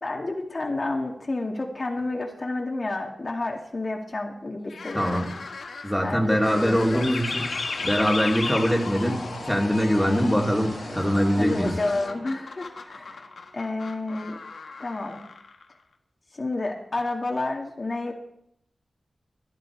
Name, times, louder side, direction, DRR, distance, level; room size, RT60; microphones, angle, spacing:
voice 1, 0.0-5.3 6.0-7.1 11.4-13.3 13.5-14.3 14.8-15.2 16.3-18.1, left 2 dB, 45° left, 1 dB, 2.0 m, -30 dB
sound 1, 4.6-15.9, left 4 dB, 85° left, 1.7 m, -40 dB
voice 2, 4.9-5.3 5.8-7.5 7.8-11.7, equal, ahead, -1 dB, 2.9 m, -23 dB
sound 2, 6.2-13.8, equal, 80° right, 3.7 m, -43 dB
sound 3, 6.4-12.1, left 4 dB, 65° left, 1.0 m, -35 dB
17.5 x 11.0 x 4.7 m, 0.74 s
cardioid pair, 60°, 0 cm